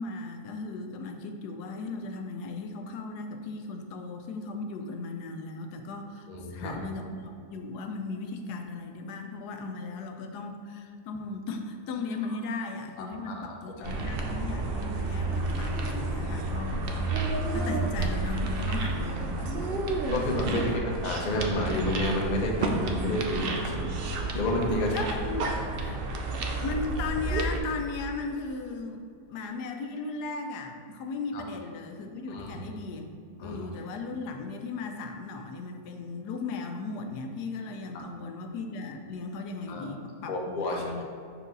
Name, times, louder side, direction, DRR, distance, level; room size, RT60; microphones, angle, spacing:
voice 1, 0.0-19.8 20.4-20.8 24.6-25.5 25.8-26.0 26.6-29.0 29.3-41.1, left 3 dB, 90° left, 5 dB, 1.2 m, -37 dB
voice 2, 6.3-6.8 13.0-14.0 20.1-23.9 24.3-24.9 31.3-31.4 32.3-32.6 33.4-33.6 39.7-39.9 40.3-41.1, left 1 dB, 40° left, 0 dB, 0.6 m, -30 dB
sound 1, 13.8-27.6, right 2 dB, 70° right, 0.5 m, -31 dB
5.5 x 4.6 x 3.9 m, 2.3 s
omnidirectional pair, 1.7 m